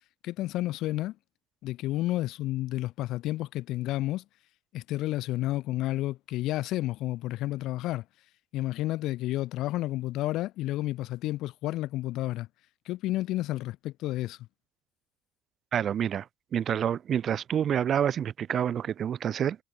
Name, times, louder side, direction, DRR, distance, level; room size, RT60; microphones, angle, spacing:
voice 1, 0.2-1.2 1.6-4.2 4.7-8.0 8.5-12.5 12.8-14.4, left 16 dB, 60° left, 4.6 m, -31 dB
voice 2, 15.7-16.2 16.5-19.6, right 9 dB, 40° right, 3.2 m, -28 dB
supercardioid pair, 115°, 0 cm